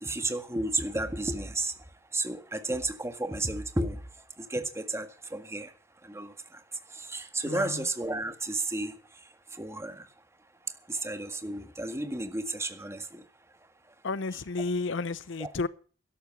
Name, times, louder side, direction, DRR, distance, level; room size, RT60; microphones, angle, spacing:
voice 1, 0.0-1.7 2.1-4.0 4.5-5.1 5.3-5.7 6.1-6.3 7.1-8.9 9.6-9.9 10.9-13.0 15.4-15.5, right 2 dB, 15° right, 1.8 m, -32 dB
voice 2, 7.5-7.9 14.0-15.7, left 3 dB, 70° left, 0.7 m, -32 dB
13.0 x 12.0 x 5.9 m
head